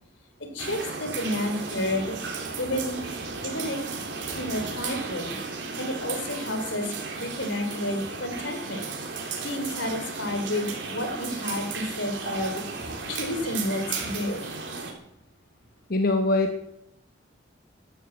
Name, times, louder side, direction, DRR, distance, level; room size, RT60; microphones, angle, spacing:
voice 1, 0.4-2.2 2.6-3.0 3.4-3.8 4.3-5.4 5.8-8.8 9.4-14.4, left 1 dB, 80° left, 6 dB, 3.2 m, -31 dB
sound 1, 0.6-14.9, right 4 dB, 70° right, 3.7 m, -34 dB
voice 2, 15.9-16.7, left 2 dB, 50° left, 6 dB, 1.0 m, -23 dB
12.5 x 12.0 x 7.9 m, 0.80 s
head